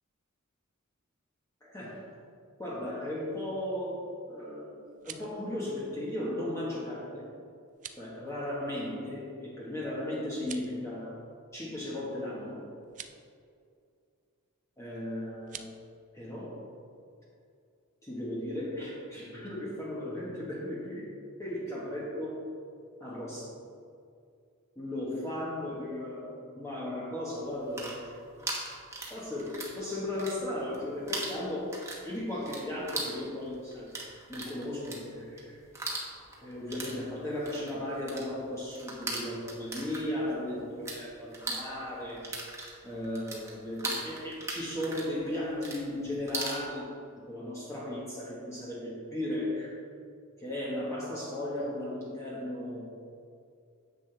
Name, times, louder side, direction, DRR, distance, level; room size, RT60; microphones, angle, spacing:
voice 1, 1.6-2.0 2.6-7.3 8.0-11.2 11.5-12.6 14.8-15.7 16.1-16.6 18.0-21.1 21.4-22.4 23.0-23.6 24.8-28.2 29.1-31.7 32.0-33.9 34.3-35.6 36.4-42.3 42.8-46.9 47.3-49.7 50.4-52.9, left 1 dB, 15° left, -7 dB, 1.3 m, -36 dB
sound 1, 4.8-5.4 7.7-8.1 10.3-10.8 12.8-13.2 15.4-15.7, right 9 dB, 35° right, 0.4 m, -45 dB
sound 2, 27.5-29.8 30.1-30.8 31.1-41.0 41.3-46.6, right 2 dB, 15° right, 1.4 m, -38 dB
9.7 x 7.6 x 3.3 m, 2.4 s
head